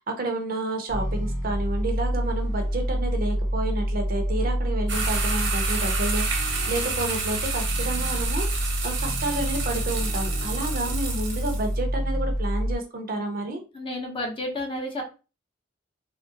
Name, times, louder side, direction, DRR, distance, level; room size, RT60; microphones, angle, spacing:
voice 1, 0.0-13.6, right 2 dB, 50° right, 4 dB, 0.7 m, -30 dB
sound 1, 0.9-12.8, equal, 75° left, 1.0 m, -27 dB
sound 2, 4.9-11.7, right 4 dB, 75° right, 0.9 m, -30 dB
voice 2, 13.7-15.0, left 1 dB, 30° left, 2 dB, 0.7 m, -31 dB
3.6 x 2.0 x 2.7 m, 0.32 s
head